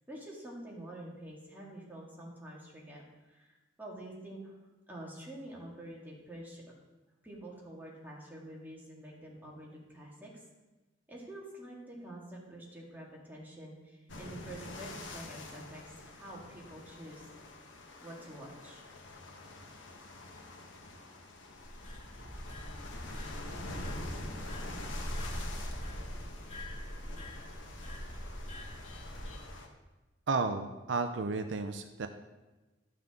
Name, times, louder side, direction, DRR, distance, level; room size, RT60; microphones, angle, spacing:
voice 1, 0.1-3.0 3.3-4.5 4.9-6.6 7.2-10.4 11.1-17.2 18.0-18.8, right 1 dB, 10° right, -4 dB, 2.0 m, -47 dB
sound 1, 14.1-29.7, left 2 dB, 80° left, 1.2 m, -46 dB
sound 2, 21.6-29.4, equal, 35° left, 1.7 m, -42 dB
voice 2, 30.3-32.1, right 4 dB, 75° right, 8 dB, 0.5 m, -32 dB
12.0 x 5.8 x 3.7 m, 1.1 s
head